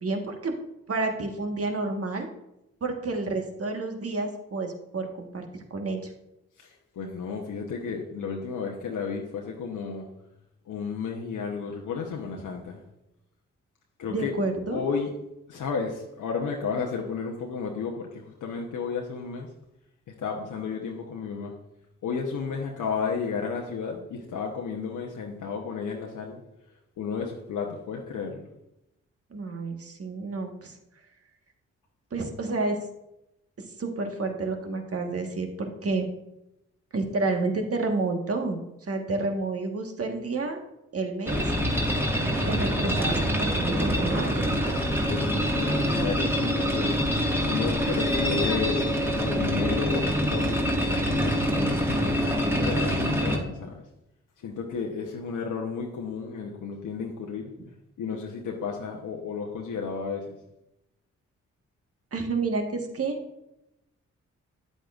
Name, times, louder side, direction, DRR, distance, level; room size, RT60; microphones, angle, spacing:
voice 1, 0.0-0.5 0.9-2.3 2.8-6.1 14.1-14.8 29.3-30.7 32.1-32.8 33.6-36.1 36.9-40.6 40.9-41.4 42.4-44.5 62.1-63.2, right 3 dB, 45° right, 4 dB, 1.4 m, -30 dB
voice 2, 6.6-10.1 10.7-12.8 14.0-14.3 14.7-15.1 15.5-19.5 20.1-21.5 22.0-26.4 27.0-28.5 45.1-48.8 49.2-52.2 52.5-53.8 54.4-57.5 58.0-60.4, left 5 dB, 70° left, 0 dB, 1.0 m, -33 dB
sound 1, 41.3-53.4, equal, 5° right, 1.8 m, -25 dB
8.7 x 8.0 x 2.5 m, 0.88 s
hypercardioid pair, 40°, 33 cm